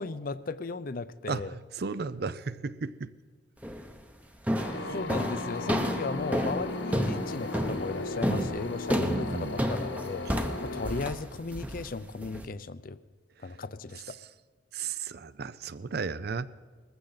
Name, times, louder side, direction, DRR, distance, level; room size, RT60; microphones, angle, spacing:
voice 1, 0.0-1.6 4.9-10.3 10.6-13.0 13.4-14.2, left 3 dB, 45° left, 14 dB, 0.5 m, -36 dB
voice 2, 1.3-3.1 8.3-8.5 9.0-9.6 14.1-14.2 14.7-16.5, right 4 dB, 55° right, 16 dB, 0.5 m, -34 dB
sound 1, 3.6-4.0 4.5-12.4, equal, 5° right, 0.7 m, -31 dB
sound 2, 4.6-11.1, left 2 dB, 75° left, 1.3 m, -36 dB
20.0 x 15.0 x 4.0 m, 1.5 s
head